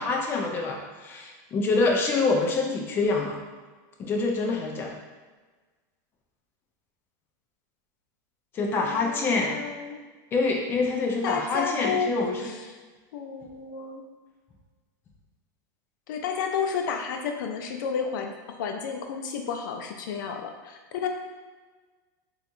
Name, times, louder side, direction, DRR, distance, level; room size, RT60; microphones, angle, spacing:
voice 1, 0.0-3.4 4.0-5.0 8.5-9.5 10.3-12.5, left 3 dB, 20° left, 0 dB, 0.4 m, -26 dB
voice 2, 8.8-10.0 11.2-12.4 13.1-14.1 16.1-21.1, left 6 dB, 85° left, 4 dB, 0.5 m, -31 dB
4.2 x 2.4 x 2.6 m, 1.3 s
supercardioid pair, 165°, 10 cm